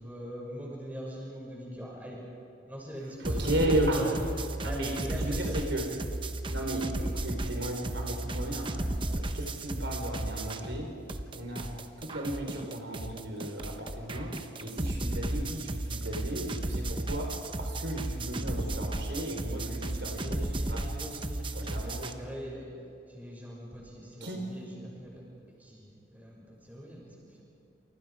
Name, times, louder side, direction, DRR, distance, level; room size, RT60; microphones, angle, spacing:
voice 1, 0.0-2.2 2.7-4.2 4.6-5.6 12.0-12.1 14.7-15.1 20.0-22.7 23.1-25.3 25.6-27.4, equal, 10° right, -4 dB, 6.4 m, -42 dB
sound 1, 3.2-10.8 11.1-22.1, right 1 dB, 25° right, 1.0 m, -34 dB
voice 2, 3.2-4.2 4.6-5.9 6.5-10.9 11.3-11.7 12.0-14.3 14.6-20.4 20.7-20.8 21.5-22.1 24.2-24.5, right 1 dB, 70° right, 2 dB, 4.3 m, -34 dB
29.0 x 28.0 x 5.0 m, 2.5 s
head